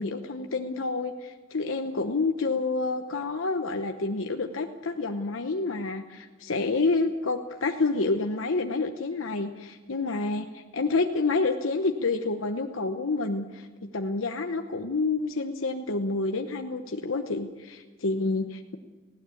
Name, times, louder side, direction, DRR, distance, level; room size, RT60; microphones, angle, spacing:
voice 1, 0.0-18.8, left 3 dB, 85° left, 5 dB, 1.0 m, -28 dB
19.0 x 16.5 x 8.5 m, 1.3 s
head